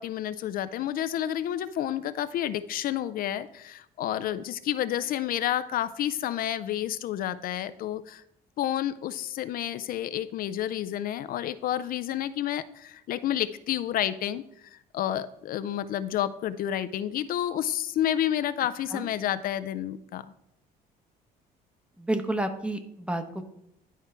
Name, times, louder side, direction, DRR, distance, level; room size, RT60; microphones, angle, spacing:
voice 1, 0.0-8.2 8.6-20.3, left 11 dB, 60° left, 13 dB, 0.4 m, -30 dB
voice 2, 22.0-23.4, right 1 dB, 5° right, 7 dB, 0.9 m, -30 dB
11.0 x 4.6 x 4.4 m, 0.79 s
cardioid pair, 110°, 17 cm